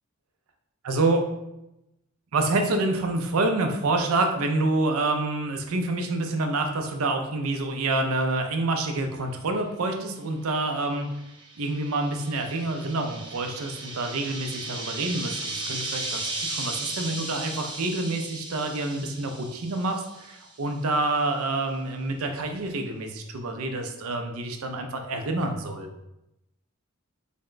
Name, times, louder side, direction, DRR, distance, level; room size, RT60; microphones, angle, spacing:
voice 1, 0.8-1.2 2.3-11.1 11.6-25.9, right 2 dB, 80° right, 5 dB, 0.5 m, -27 dB
sound 1, 10.7-20.5, right 2 dB, 20° right, 0.4 m, -36 dB
3.5 x 2.2 x 3.8 m, 0.89 s
head